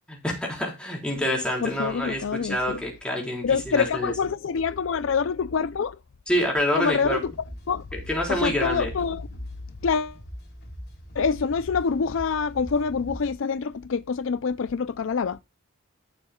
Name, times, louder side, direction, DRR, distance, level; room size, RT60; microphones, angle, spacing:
voice 1, 0.1-4.1 6.3-7.2 7.9-8.9, equal, 5° left, 4.1 m, -27 dB
voice 2, 1.6-2.8 3.4-6.0 6.8-7.3 7.7-7.8 8.3-9.3 9.8-10.2 11.1-15.4, left 5 dB, 65° left, 0.4 m, -26 dB
sound 1, 7.0-13.3, equal, 50° left, 3.7 m, -42 dB
14.0 x 7.2 x 2.3 m
head